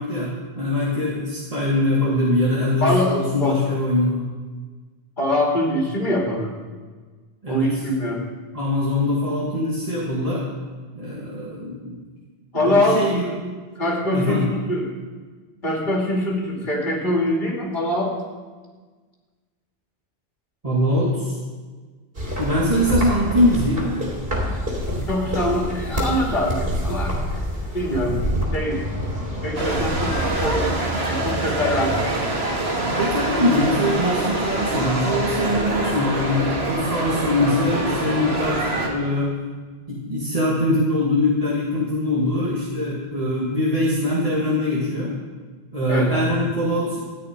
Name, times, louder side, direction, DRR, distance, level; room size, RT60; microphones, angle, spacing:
voice 1, 0.0-4.2 7.4-7.7 8.5-10.5 11.0-12.0 12.5-13.3 14.1-14.5 20.6-21.4 22.4-23.9 32.8-39.4 39.9-45.1 45.7-47.0, left 1 dB, 35° right, -6 dB, 2.1 m, -22 dB
voice 2, 2.8-3.6 5.2-6.5 7.5-8.3 12.5-13.0 13.8-14.9 15.6-18.1 25.1-27.2 27.7-28.2 28.5-28.8 29.4-30.1 30.4-32.0 45.9-46.2, left 1 dB, 50° left, -2 dB, 2.8 m, -23 dB
sound 1, 22.1-30.7, equal, 65° right, 3.3 m, -27 dB
sound 2, 29.6-38.9, right 2 dB, 85° right, 2.1 m, -25 dB
14.0 x 5.9 x 9.8 m, 1.4 s
omnidirectional pair, 1.0 m